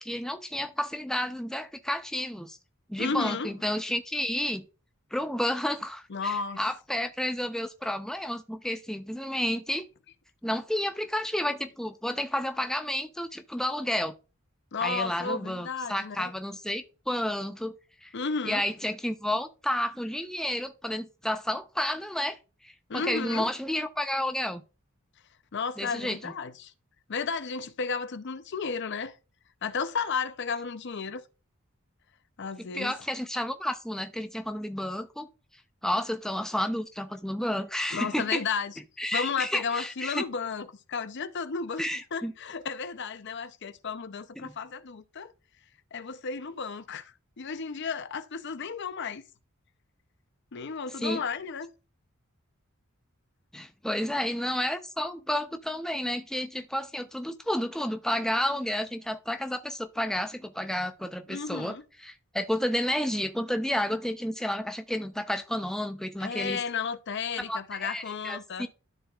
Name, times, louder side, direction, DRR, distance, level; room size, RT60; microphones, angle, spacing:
voice 1, 0.0-2.6 2.9-4.7 5.1-9.8 10.4-14.1 14.8-17.7 18.0-18.1 18.4-22.4 22.6-24.6 25.8-26.2 32.7-35.3 35.8-38.4 39.0-40.2 41.8-42.3 44.4-44.5 51.0-51.2 53.5-61.7 62.0-66.6 67.4-68.7, left 1 dB, 5° left, 0.6 m, -31 dB
voice 2, 3.0-3.5 6.1-6.6 14.7-16.3 18.1-18.6 22.9-23.5 25.5-26.7 27.1-29.2 29.6-31.2 32.4-32.9 37.9-38.7 39.1-41.8 42.1-45.3 45.9-49.2 50.5-51.7 61.3-61.8 66.2-68.7, left 5 dB, 55° left, 0.6 m, -33 dB
13.0 x 4.6 x 2.4 m
head